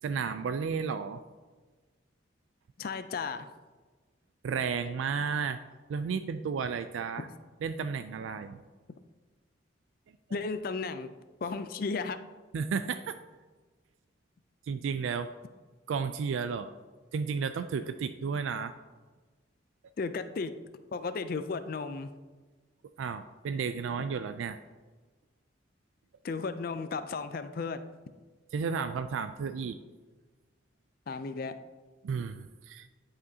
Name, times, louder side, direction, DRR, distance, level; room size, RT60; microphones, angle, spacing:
voice 1, 0.0-1.2 4.4-5.6 5.9-7.3 7.6-8.6 12.5-13.2 14.7-15.3 15.9-16.7 17.1-18.7 23.0-24.6 28.5-29.8 32.0-32.9, right 6 dB, 90° right, 10 dB, 0.3 m, -33 dB
voice 2, 2.8-3.5 7.2-7.3 10.3-11.1 11.4-12.2 20.0-20.5 20.9-22.1 26.2-27.8 31.1-31.6, left 4 dB, 50° left, 10 dB, 0.4 m, -34 dB
10.5 x 5.0 x 2.8 m, 1.3 s
head